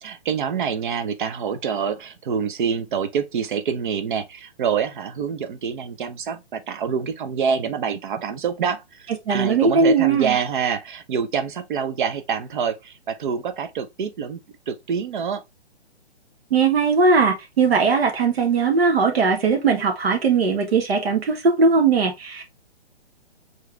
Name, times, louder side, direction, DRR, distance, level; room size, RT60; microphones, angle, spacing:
voice 1, 0.0-15.4, right 7 dB, 50° right, 0.9 m, -26 dB
voice 2, 9.3-10.4 16.5-22.4, right 4 dB, 70° right, 1.4 m, -19 dB
4.7 x 3.2 x 3.2 m
hypercardioid pair, 140°, 32 cm